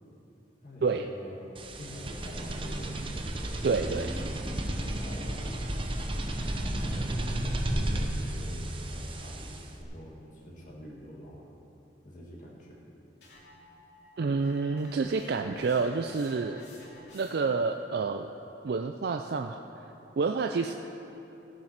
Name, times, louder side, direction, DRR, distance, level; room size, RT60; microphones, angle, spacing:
voice 1, 0.6-1.5 1.8-2.9 4.4-5.8 6.7-11.5 12.0-12.9, left 1 dB, 50° left, -3 dB, 1.8 m, -46 dB
sound 1, 1.6-9.8, right 1 dB, 30° right, 0.8 m, -33 dB
voice 2, 3.6-4.2 14.2-16.6 17.1-18.3 18.6-19.6 20.2-20.7, right 4 dB, 65° right, 5 dB, 0.4 m, -28 dB
sound 2, 13.2-17.6, left 1 dB, 70° left, 2.6 m, -53 dB
15.0 x 7.4 x 5.9 m, 3.0 s
head